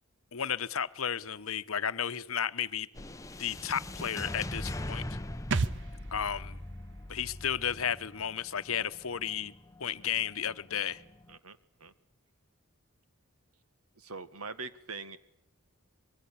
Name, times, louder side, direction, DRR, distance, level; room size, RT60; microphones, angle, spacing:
voice 1, 0.3-2.9 3.4-5.0 6.1-6.6 7.1-9.5 9.8-11.0, left 8 dB, 65° left, 14 dB, 1.0 m, -33 dB
sound 1, 2.9-11.3, left 1 dB, 15° left, 0.9 m, -42 dB
sound 2, 5.5-9.0 9.3-9.4, right 4 dB, 55° right, 1.1 m, -37 dB
voice 2, 11.3-11.9 14.0-15.2, right 4 dB, 90° right, 12 dB, 1.9 m, -43 dB
25.0 x 22.5 x 8.7 m, 0.77 s
head